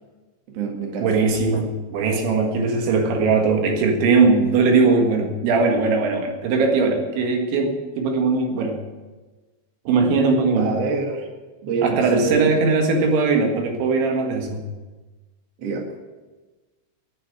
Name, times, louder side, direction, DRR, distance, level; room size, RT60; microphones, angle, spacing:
voice 1, 0.5-1.2 10.6-11.3 11.6-12.5 15.6-15.9, right 4 dB, 50° right, 2 dB, 2.0 m, -26 dB
voice 2, 1.0-8.8 9.9-10.8 11.8-14.6, right 4 dB, 75° right, 2 dB, 4.1 m, -20 dB
10.5 x 9.9 x 9.0 m, 1.2 s
omnidirectional pair, 5.4 m